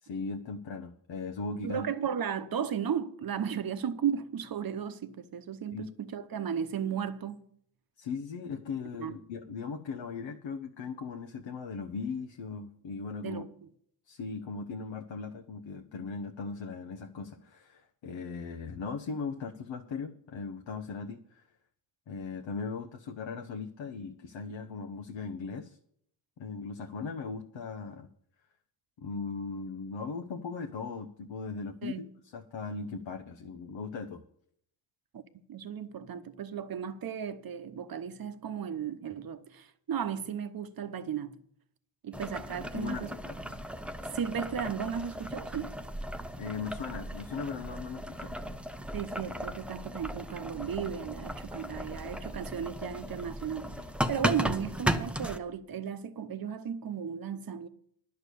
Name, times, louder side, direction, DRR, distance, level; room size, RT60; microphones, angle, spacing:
voice 1, 0.0-1.9 5.7-5.9 8.0-13.4 14.1-21.4 22.1-25.8 26.4-28.1 29.0-32.1 32.3-34.2 42.7-43.4 46.4-48.3, left 4 dB, 65° left, 0.9 m, -38 dB
voice 2, 1.6-7.5 9.0-9.1 13.2-13.5 31.8-32.0 35.1-35.2 35.5-41.4 42.0-43.1 43.5-43.6 44.1-45.7 48.9-53.7 54.1-57.7, right 8 dB, 45° right, 0.9 m, -35 dB
Boiling, 42.1-55.4, equal, ahead, 0.6 m, -36 dB
11.0 x 6.6 x 8.3 m
cardioid pair, 100°, 49 cm